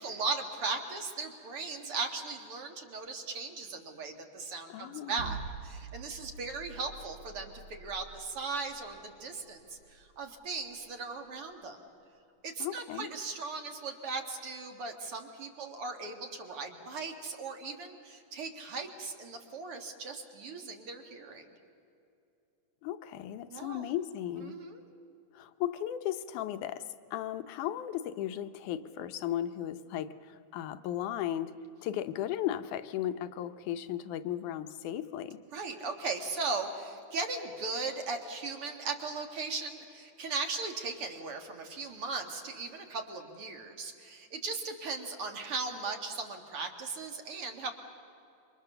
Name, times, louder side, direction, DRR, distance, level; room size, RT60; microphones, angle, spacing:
voice 1, 0.0-5.4 5.6-11.8 12.4-21.5 23.5-23.8 24.5-24.8 35.5-47.7, right 4 dB, 50° right, 4 dB, 2.4 m, -38 dB
voice 2, 4.7-5.4 12.6-13.1 22.8-24.6 25.3-31.5 31.8-35.4, left 11 dB, 75° left, 10 dB, 2.2 m, -36 dB
sound 1, 5.2-11.3, right 5 dB, 70° right, 1.4 m, -46 dB
27.5 x 25.0 x 6.8 m, 2.7 s
omnidirectional pair, 3.7 m